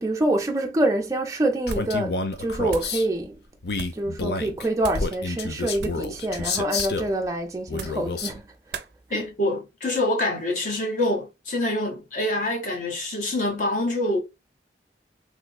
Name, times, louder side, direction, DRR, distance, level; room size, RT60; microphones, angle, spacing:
voice 1, 0.0-3.4 3.9-8.8 9.1-9.3, right 1 dB, 20° right, 0.4 m, -26 dB
sound 1, 1.6-2.0 2.3-3.0 3.7-4.1 4.8-5.1 5.7-6.1 6.7-7.1 7.7-8.1 8.7-8.9, right 5 dB, 70° right, 0.5 m, -38 dB
Male speech man speaking, 1.7-3.1 3.6-7.1 7.7-8.4, left 3 dB, 60° left, 0.6 m, -29 dB
voice 2, 9.1-14.2, left 1 dB, 45° left, 1.2 m, -26 dB
3.4 x 3.0 x 2.2 m
head